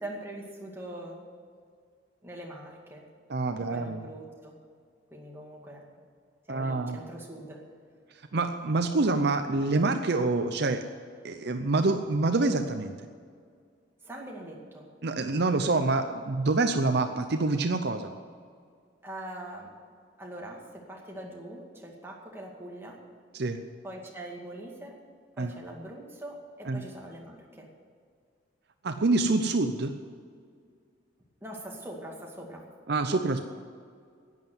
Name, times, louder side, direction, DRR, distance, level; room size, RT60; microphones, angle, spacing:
voice 1, 0.0-1.3 2.2-3.1 3.6-4.5 5.1-5.8 6.5-7.7 14.0-14.9 19.0-19.7 20.2-23.1 23.8-25.0 25.4-27.7 31.4-32.7, right 1 dB, 10° right, -2 dB, 2.2 m, -42 dB
voice 2, 3.3-4.0 6.5-7.0 8.3-10.8 11.2-12.9 15.0-18.1 23.3-23.6 25.4-25.5 26.7-26.8 28.8-29.9 32.9-33.4, right 3 dB, 55° right, 7 dB, 0.7 m, -26 dB
11.0 x 9.2 x 9.5 m, 2.1 s
head